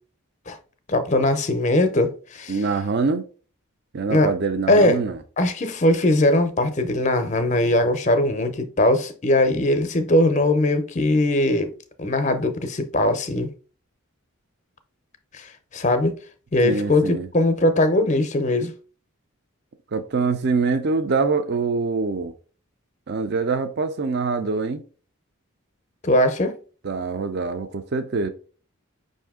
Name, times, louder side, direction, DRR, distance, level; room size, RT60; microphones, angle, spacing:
voice 1, 0.9-2.6 4.1-4.3 4.7-5.0 5.4-11.7 12.0-13.5 15.3-16.1 16.5-18.7 26.0-26.6, left 1 dB, 35° left, 0.5 m, -20 dB
voice 2, 2.5-3.2 3.9-5.2 16.6-17.3 19.9-22.3 23.1-24.8 26.8-28.3, right 4 dB, 50° right, 0.4 m, -24 dB
5.4 x 2.6 x 3.5 m
head